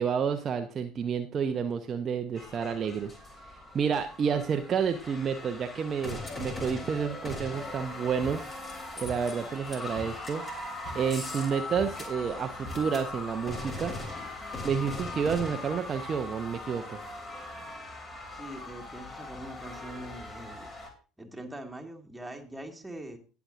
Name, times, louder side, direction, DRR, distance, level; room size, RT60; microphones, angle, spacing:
voice 1, 0.0-8.5 9.0-10.4 10.9-13.9 14.6-17.0, right 6 dB, 35° right, 6 dB, 0.7 m, -30 dB
sound 1, 2.4-20.9, left 2 dB, 25° left, 3.1 m, -40 dB
voice 2, 18.3-20.7 21.2-23.2, right 1 dB, 5° right, 2 dB, 1.9 m, -43 dB
19.0 x 7.0 x 2.6 m, 0.35 s
figure-of-eight pair, 65°, 0 cm